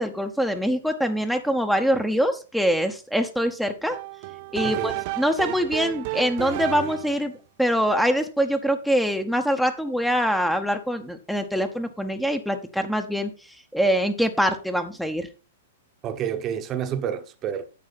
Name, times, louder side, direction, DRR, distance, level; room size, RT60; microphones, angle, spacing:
voice 1, 0.0-4.0 4.5-7.3 7.6-13.3 13.7-15.3, equal, ahead, 0.9 m, -24 dB
sound 1, 3.9-7.2, right 20 dB, 45° right, 0.4 m, -32 dB
voice 2, 4.6-5.0 16.0-17.6, right 9 dB, 30° right, 1.0 m, -29 dB
9.5 x 7.2 x 4.1 m
figure-of-eight pair, 105°, 0 cm